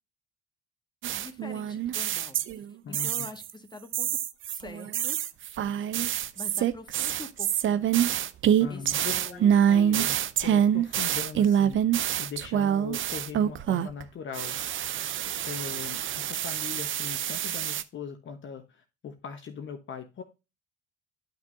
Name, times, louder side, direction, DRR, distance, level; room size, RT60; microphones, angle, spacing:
sound 1, 1.0-2.6 2.9-3.5 3.9-14.0 14.3-17.8, right 10 dB, 40° right, 0.6 m, -26 dB
voice 1, 1.1-2.7 3.0-4.1 4.5-5.2 6.3-8.1 8.7-9.8, left 2 dB, 15° left, 6 dB, 1.6 m, -45 dB
voice 2, 2.8-3.3 8.6-9.4 9.7-11.8 12.2-14.6 15.4-20.2, left 6 dB, 40° left, 5 dB, 1.2 m, -40 dB
10.5 x 6.0 x 2.6 m, 0.27 s
hypercardioid pair, 55°, 29 cm